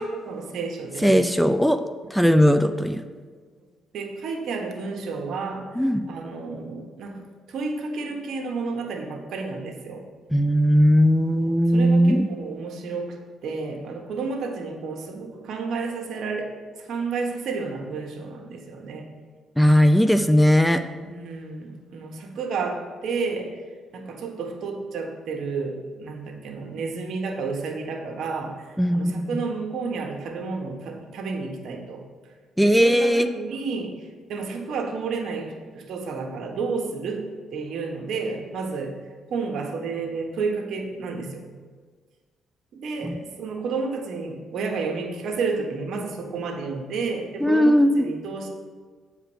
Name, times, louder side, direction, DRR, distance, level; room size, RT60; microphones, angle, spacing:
voice 1, 0.0-1.3 3.9-7.2 7.5-10.0 11.4-13.2 13.4-16.5 16.8-19.1 20.9-23.5 23.9-32.0 32.6-37.3 37.5-38.9 39.3-41.5 42.7-48.5, right 4 dB, 70° right, 2 dB, 1.5 m, -31 dB
voice 2, 1.0-1.8 2.1-3.0 5.8-6.0 10.3-12.3 19.6-20.8 28.8-29.5 32.6-33.3 43.0-43.2 47.4-48.0, equal, ahead, 9 dB, 0.4 m, -18 dB
8.8 x 4.9 x 6.3 m, 1.5 s
cardioid pair, 90°, 0 cm